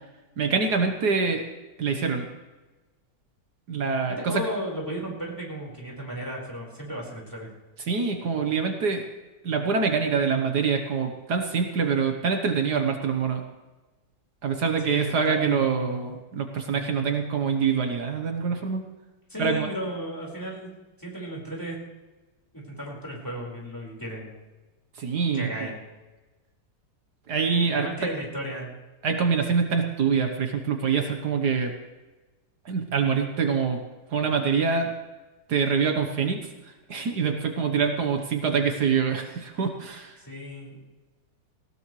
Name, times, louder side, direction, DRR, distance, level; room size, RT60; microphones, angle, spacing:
voice 1, 0.4-1.4 1.8-2.3 3.7-4.4 7.9-9.0 9.4-13.4 14.4-18.9 19.4-19.7 25.0-25.7 27.3-27.9 29.0-31.7 32.6-33.8 34.1-34.9 35.5-36.4 36.9-40.2, right 5 dB, 65° right, 5 dB, 1.7 m, -25 dB
voice 2, 4.2-7.5 14.8-16.1 16.7-17.0 19.3-20.7 21.0-21.8 22.5-24.3 25.3-25.8 27.7-28.7 40.2-40.8, equal, 10° left, -3 dB, 4.8 m, -35 dB
19.5 x 17.5 x 3.2 m, 1.2 s
omnidirectional pair, 1.9 m